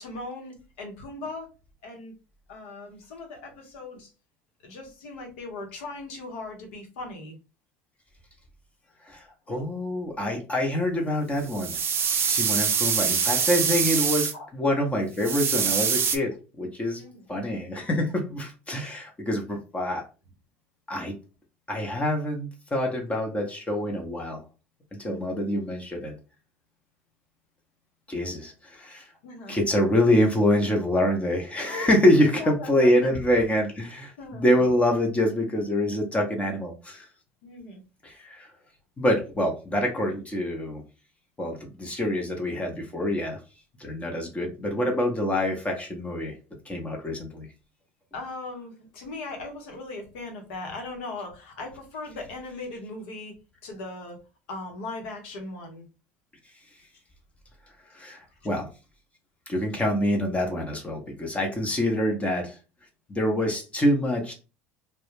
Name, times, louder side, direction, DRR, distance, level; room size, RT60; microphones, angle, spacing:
voice 1, 0.0-1.5 1.8-2.1 2.5-4.1 4.6-7.4 9.5-9.6 14.3-14.5 17.0-17.3 25.0-25.4 29.2-29.6 32.2-33.2 34.2-34.7 37.4-37.8 48.1-53.4 53.6-54.2 54.5-55.9 58.1-58.5, left 2 dB, 75° left, 3 dB, 0.9 m, -39 dB
voice 2, 9.1-11.7 12.3-17.0 17.3-20.0 20.9-21.1 21.7-24.4 24.9-26.1 28.1-29.1 29.5-37.0 38.0-38.5 39.0-40.8 41.4-43.4 43.8-46.4 46.7-47.5 57.9-58.7 59.5-62.6 63.1-64.3, left 1 dB, 20° left, 2 dB, 0.8 m, -26 dB
sound 1, 11.4-14.3 15.2-16.2, right 6 dB, 40° right, 0.4 m, -24 dB
2.2 x 2.1 x 3.1 m, 0.31 s
hypercardioid pair, 80°, 6 cm